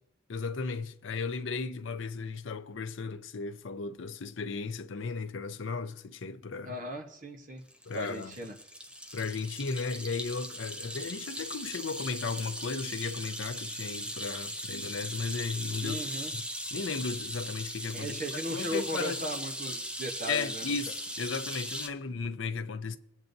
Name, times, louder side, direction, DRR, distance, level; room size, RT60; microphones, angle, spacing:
voice 1, 0.3-6.8 7.9-8.3 9.1-16.0 16.3-16.4 16.7-18.2 18.5-19.2 20.3-23.0, left 4 dB, 85° left, 0.6 m, -35 dB
voice 2, 6.6-7.6 7.9-8.6 15.8-16.3 17.9-20.7, equal, 45° right, 1.0 m, -37 dB
sound 1, 7.7-21.9, equal, 5° right, 0.6 m, -39 dB
20.5 x 8.1 x 2.6 m
head